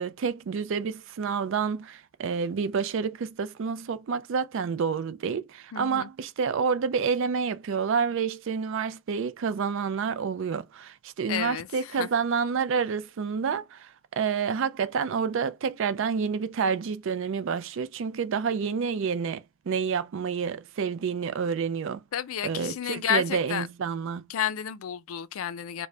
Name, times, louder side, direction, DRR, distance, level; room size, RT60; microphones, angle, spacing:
voice 1, 0.0-22.0 22.4-24.3, right 6 dB, 65° right, 0.4 m, -29 dB
voice 2, 5.7-6.1 11.3-11.7 12.0-12.1 22.1-23.7 24.3-25.9, left 9 dB, 85° left, 0.4 m, -31 dB
3.3 x 2.1 x 3.7 m
head